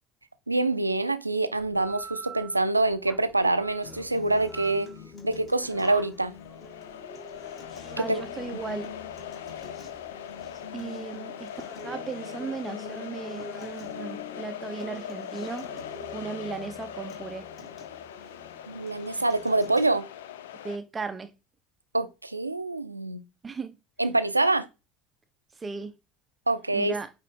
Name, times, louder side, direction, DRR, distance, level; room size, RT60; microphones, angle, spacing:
voice 1, 0.5-4.9 5.2-6.3 8.0-8.2 8.5-8.6 18.7-20.1 21.9-23.2 24.0-24.7 26.5-26.9, right 2 dB, 85° right, 0.5 m, -25 dB
sound 1, 1.6-10.8, right 5 dB, 5° right, 0.9 m, -48 dB
Acoustic guitar, 3.8-19.8, left 3 dB, 30° left, 2.7 m, -45 dB
sound 2, 6.1-20.8, left 9 dB, 65° left, 0.5 m, -41 dB
voice 2, 8.0-8.9 9.5-9.6 10.7-11.5 11.8-15.7 16.1-17.5 18.2-18.3 19.1-19.2 20.6-21.3 23.4-23.7 25.5-25.9 26.7-27.1, right 4 dB, 20° right, 0.5 m, -36 dB
8.4 x 3.2 x 3.5 m
figure-of-eight pair, 65°, 0 cm